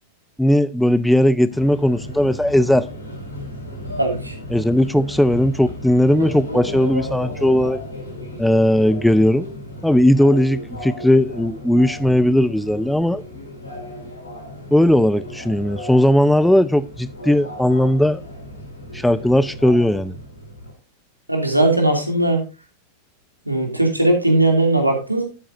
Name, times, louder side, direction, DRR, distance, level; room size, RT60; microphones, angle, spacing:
voice 1, 0.4-2.9 4.5-7.8 8.4-9.5 9.8-13.2 14.7-18.2 18.9-20.1, left 1 dB, ahead, 0.5 m, -17 dB
Subway metro underground, 1.5-20.7, left 1 dB, 80° left, 3.4 m, -34 dB
voice 2, 4.0-4.4 21.3-22.4 23.4-25.2, right 2 dB, 85° right, 2.8 m, -18 dB
12.0 x 8.7 x 2.7 m
figure-of-eight pair, 90°, 0 cm